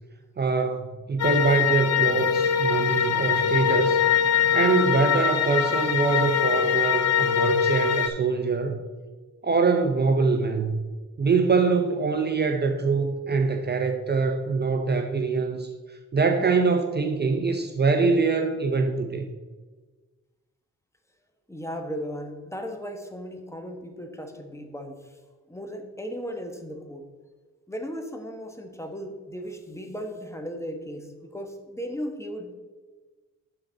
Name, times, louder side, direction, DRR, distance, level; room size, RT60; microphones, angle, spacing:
voice 1, 0.4-4.0 4.5-8.8 9.4-10.7 11.2-19.2, right 4 dB, 35° right, 5 dB, 0.6 m, -24 dB
sound 1, 1.2-8.1, left 8 dB, 60° left, 0.7 m, -23 dB
voice 2, 21.5-25.1 25.5-27.1 27.7-32.5, equal, 10° left, 4 dB, 1.1 m, -36 dB
11.5 x 4.0 x 3.9 m, 1.3 s
cardioid pair, 75°, 29 cm